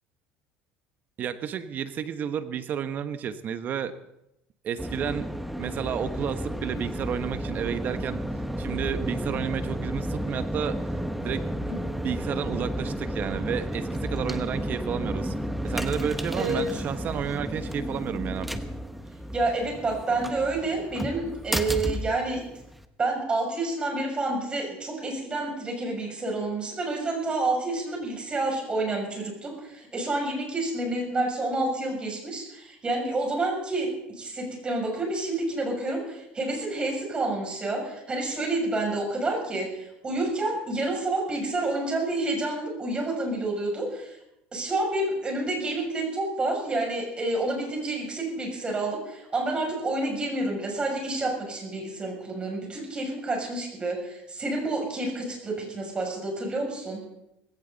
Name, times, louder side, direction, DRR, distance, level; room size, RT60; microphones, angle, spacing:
voice 1, 1.2-3.9 4.6-5.3 5.6-8.2 8.6-10.8 11.2-11.7 12.0-15.3 15.6-18.5, right 8 dB, 45° right, 11 dB, 1.2 m, -31 dB
sound 1, 4.8-22.8, equal, 5° right, 1.1 m, -32 dB
voice 2, 19.3-22.4 23.0-33.9 34.1-44.2 44.5-57.0, right 2 dB, 25° right, 1 dB, 7.2 m, -29 dB
19.0 x 17.0 x 4.1 m, 0.85 s
supercardioid pair, 110°, 4 cm